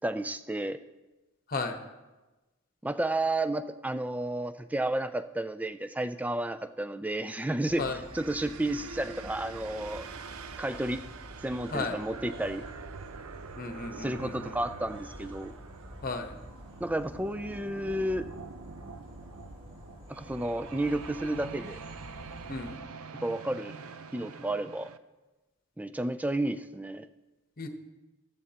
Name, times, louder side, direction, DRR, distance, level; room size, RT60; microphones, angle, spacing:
voice 1, 0.0-0.8 2.8-10.1 10.6-11.0 11.4-12.6 14.0-15.5 16.8-18.3 20.1-21.8 23.2-23.7 24.1-24.9 25.8-27.1, right 1 dB, 5° right, 11 dB, 0.3 m, -32 dB
sound 1, 7.7-22.8, equal, 25° right, 3.6 m, -49 dB
sound 2, 8.0-25.0, right 5 dB, 85° right, 0.6 m, -45 dB
voice 2, 13.6-14.6 16.0-16.4 22.5-22.7 27.6-27.7, left 3 dB, 40° left, 6 dB, 1.0 m, -34 dB
14.0 x 13.5 x 2.9 m, 1.1 s
head